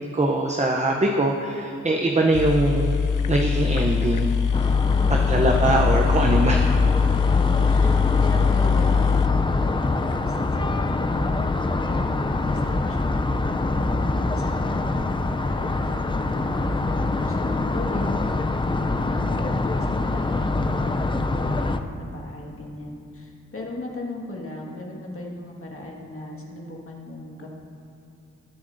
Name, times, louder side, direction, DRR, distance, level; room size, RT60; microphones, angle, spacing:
voice 1, 0.1-2.9 3.3-4.3 5.1-6.6, right 2 dB, 25° right, 1 dB, 0.6 m, -22 dB
sound 1, 2.1-2.2 2.3-10.2, left 6 dB, 85° left, 0.5 m, -22 dB
sound 2, 4.5-21.8, left 2 dB, 15° left, 0.4 m, -25 dB
voice 2, 4.8-5.5 7.3-15.0 15.5-18.2 18.7-27.5, left 2 dB, 45° left, -2 dB, 1.7 m, -37 dB
20.0 x 7.1 x 2.6 m, 2.6 s
wide cardioid pair, 80°, 30 cm